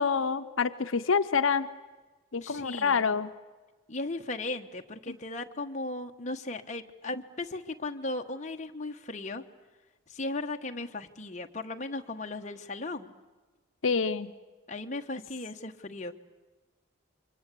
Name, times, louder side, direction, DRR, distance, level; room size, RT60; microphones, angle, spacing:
voice 1, 0.0-1.7 2.3-3.3 13.8-14.3, left 5 dB, 80° left, 10 dB, 0.8 m, -27 dB
voice 2, 2.4-3.1 3.9-9.4 10.1-13.1 14.7-16.1, left 2 dB, 35° left, 4 dB, 1.2 m, -36 dB
28.0 x 24.5 x 8.4 m, 1.3 s
head